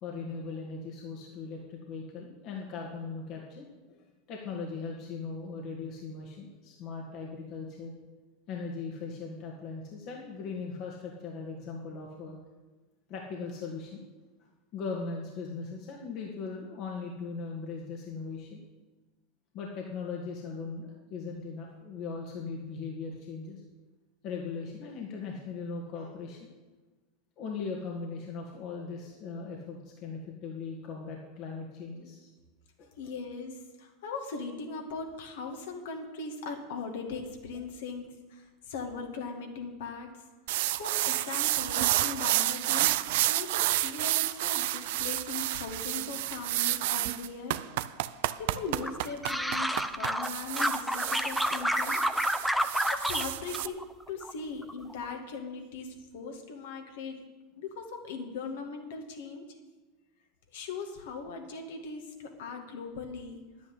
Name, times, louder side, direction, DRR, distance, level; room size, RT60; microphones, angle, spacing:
voice 1, 0.0-7.9 8.5-12.4 13.1-14.0 14.7-18.6 19.5-23.6 24.2-26.5 27.4-32.3 32.8-32.9, left 4 dB, 50° left, -1 dB, 2.1 m, -39 dB
voice 2, 33.0-40.1 40.8-47.6 48.4-52.0 52.9-57.2 57.6-59.6 60.5-63.7, left 4 dB, 70° left, 3 dB, 2.3 m, -39 dB
sound 1, 40.5-53.7, right 16 dB, 65° right, 0.5 m, -30 dB
sound 2, 48.8-50.3 50.6-53.2 53.5-54.3 54.6-55.1, equal, ahead, 0.8 m, -29 dB
10.5 x 9.5 x 8.3 m, 1.2 s
hypercardioid pair, 90°, 0 cm